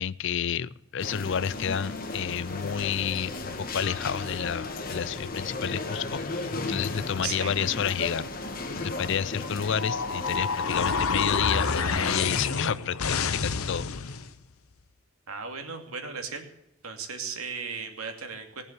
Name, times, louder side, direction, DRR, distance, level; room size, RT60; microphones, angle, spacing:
voice 1, 0.0-8.3 8.8-14.1, left 8 dB, 60° left, 19 dB, 0.5 m, -30 dB
sound 1, 1.0-12.4, left 2 dB, 40° left, 1.6 m, -35 dB
voice 2, 7.2-7.5 15.3-16.5 16.8-18.6, right 5 dB, 90° right, 5 dB, 2.5 m, -36 dB
sound 2, 9.7-14.3, left 5 dB, 85° left, 0.9 m, -28 dB
19.5 x 7.3 x 8.0 m, 0.82 s
head